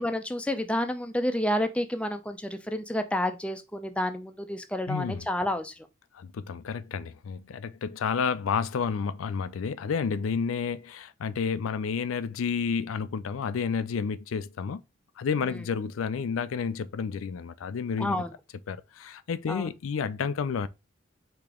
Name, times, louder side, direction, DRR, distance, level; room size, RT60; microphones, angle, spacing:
voice 1, 0.0-5.7 18.0-18.3 19.5-19.7, left 1 dB, 5° left, 0.4 m, -29 dB
voice 2, 4.9-5.3 6.1-14.8 15.2-18.2 18.7-20.7, left 6 dB, 90° left, 0.4 m, -30 dB
5.0 x 2.9 x 3.6 m
head